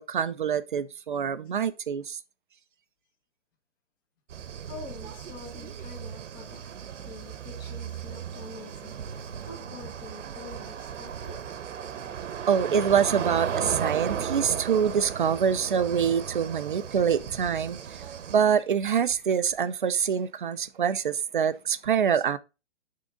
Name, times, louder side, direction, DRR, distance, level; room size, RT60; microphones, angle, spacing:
voice 1, 0.0-2.2 12.5-17.8 18.3-22.4, right 7 dB, 45° right, 0.5 m, -25 dB
sound 1, 4.3-18.4, right 8 dB, 85° right, 1.0 m, -36 dB
voice 2, 4.7-6.7 7.0-11.4 12.8-12.9, left 4 dB, 20° left, 1.1 m, -46 dB
8.7 x 3.7 x 3.7 m
hypercardioid pair, 180°, 36 cm